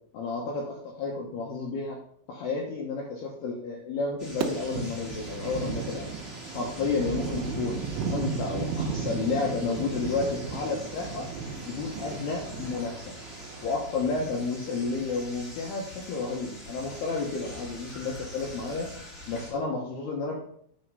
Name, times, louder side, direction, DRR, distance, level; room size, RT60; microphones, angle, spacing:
voice 1, 0.1-2.0 2.3-6.1 6.5-7.8 8.1-11.3 11.7-13.1 13.6-18.9 19.3-20.4, left 4 dB, 70° left, -1 dB, 2.6 m, -31 dB
sound 1, 4.2-19.5, left 1 dB, 35° left, 1.1 m, -44 dB
sound 2, 4.4-13.8, right 5 dB, 80° right, 3.1 m, -35 dB
9.0 x 4.4 x 5.3 m, 0.66 s
omnidirectional pair, 5.7 m